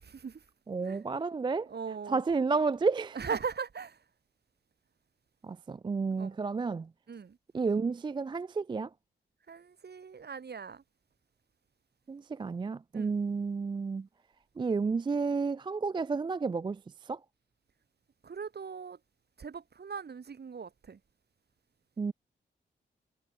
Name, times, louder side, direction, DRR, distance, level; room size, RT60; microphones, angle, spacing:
voice 1, 0.0-0.4 0.8-1.0 1.7-2.2 3.1-4.0 6.1-6.4 7.1-7.4 9.5-10.8 12.9-13.1 18.2-19.0 19.4-21.0, right 6 dB, 55° right, 2.1 m, -39 dB
voice 2, 0.7-1.7 2.1-3.2 5.4-6.9 7.5-8.9 12.1-14.1 14.6-16.8 17.1-17.2 22.0-22.1, right 4 dB, 25° right, 0.3 m, -31 dB
cardioid pair, 50°, 20 cm